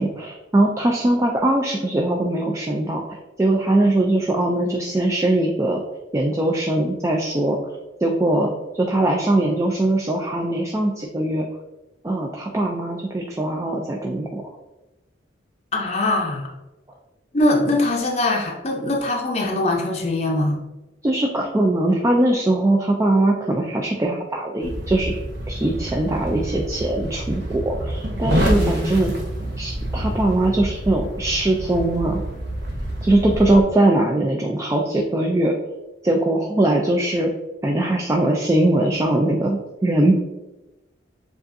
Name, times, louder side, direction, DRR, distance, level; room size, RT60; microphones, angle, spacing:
voice 1, 0.0-5.8 6.1-7.6 8.0-11.5 12.0-14.4 21.0-25.1 25.5-29.1 29.6-32.2 33.0-35.5 36.0-37.3 37.6-40.1, right 1 dB, 15° right, 0 dB, 0.3 m, -21 dB
voice 2, 15.7-16.5 17.3-20.6 28.5-29.0, left 2 dB, 35° left, 0 dB, 0.6 m, -22 dB
sound 1, 24.6-33.6, right 1 dB, 70° right, 0.9 m, -27 dB
7.0 x 2.5 x 2.6 m, 1.0 s
head